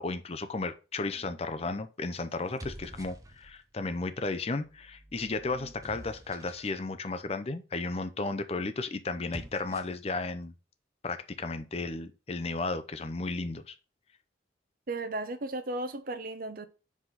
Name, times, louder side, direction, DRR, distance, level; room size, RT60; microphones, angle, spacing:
voice 1, 0.0-10.5 11.0-13.7, left 3 dB, 35° left, 0.6 m, -34 dB
sound 1, 1.1-1.5 2.4-3.7 4.5-6.8 9.1-10.1, right 1 dB, 20° right, 0.6 m, -48 dB
voice 2, 14.9-16.7, right 2 dB, 50° right, 0.8 m, -35 dB
4.9 x 4.0 x 5.7 m
head